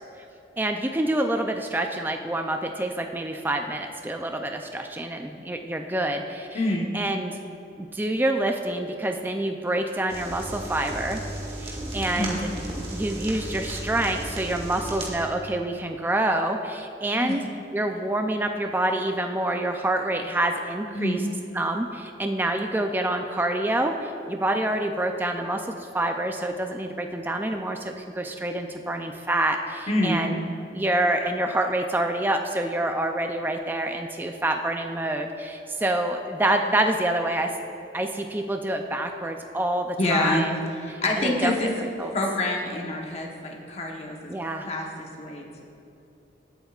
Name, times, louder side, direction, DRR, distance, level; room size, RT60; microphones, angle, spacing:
voice 1, 0.6-6.6 6.9-7.3 7.8-11.2 11.6-12.4 12.9-17.4 17.7-21.2 21.5-25.7 25.9-30.4 30.7-37.5 37.9-40.5 40.9-42.1 44.3-44.7, right 1 dB, 10° right, 4 dB, 0.4 m, -27 dB
voice 2, 6.5-6.9 12.1-12.4 17.2-17.4 20.9-21.3 29.9-30.2 40.0-40.5 40.8-41.7 42.0-44.3 44.6-45.6, left 1 dB, 35° left, 0 dB, 1.0 m, -27 dB
sound 1, 10.1-15.1, right 1 dB, 30° right, 1.9 m, -34 dB
20.0 x 8.0 x 2.4 m, 2.9 s
head